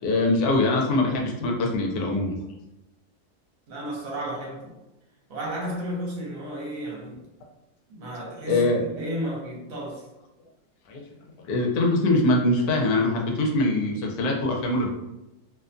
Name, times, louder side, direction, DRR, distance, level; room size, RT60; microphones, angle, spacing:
voice 1, 0.0-2.3 8.5-8.8 10.9-11.0 11.4-14.9, left 2 dB, 75° left, 0 dB, 1.1 m, -23 dB
voice 2, 3.7-4.8 5.3-7.2 7.9-10.1, equal, 60° right, -3 dB, 1.2 m, -33 dB
2.8 x 2.2 x 2.4 m, 0.94 s
omnidirectional pair, 1.7 m